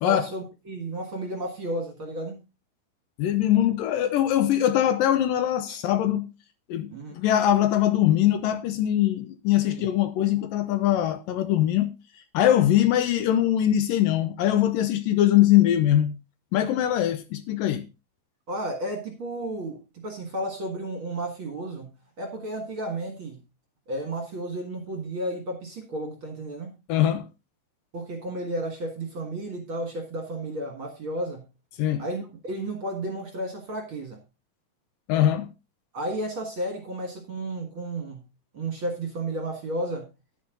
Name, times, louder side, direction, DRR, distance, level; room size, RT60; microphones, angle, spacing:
voice 1, 0.0-2.4 5.7-5.8 6.9-7.2 9.7-9.9 18.5-21.9 22.2-23.4 23.9-26.7 27.9-31.4 32.0-34.2 35.9-38.2 38.5-40.0, right 1 dB, 45° right, 2.0 m, -32 dB
voice 2, 3.2-6.3 6.7-6.9 7.1-11.9 12.3-16.1 16.5-17.9 26.9-27.3 31.8-32.0 35.1-35.5, left 12 dB, 75° left, 2.3 m, -22 dB
10.5 x 9.7 x 3.8 m
omnidirectional pair, 4.3 m